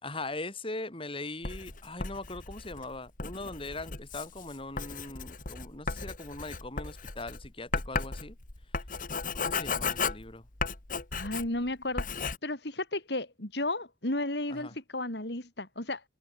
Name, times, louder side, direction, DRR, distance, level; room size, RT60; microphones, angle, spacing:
voice 1, 0.0-8.4 9.3-10.4 14.5-14.7, left 2 dB, 30° left, 4.1 m, -40 dB
Writing, 1.4-11.7 12.0-12.4, left 4 dB, 50° left, 2.0 m, -35 dB
voice 2, 11.1-16.0, left 2 dB, 65° left, 4.1 m, -34 dB
head